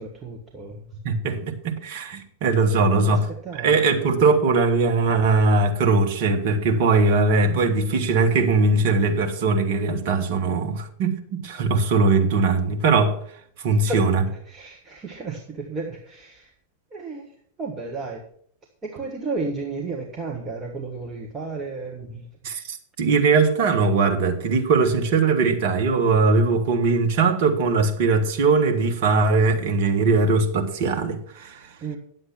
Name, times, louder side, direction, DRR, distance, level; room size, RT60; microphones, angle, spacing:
voice 1, 0.0-0.9 2.8-3.7 4.0-4.1 13.9-14.0 14.5-16.5 16.9-17.3 17.6-18.2 18.8-22.3 31.8-32.0, right 3 dB, 20° right, 1.6 m, -33 dB
voice 2, 1.0-3.3 3.5-13.2 13.6-14.2 22.4-31.7, right 4 dB, 50° right, 1.6 m, -20 dB
10.0 x 7.5 x 6.1 m
figure-of-eight pair, 90°, 0 cm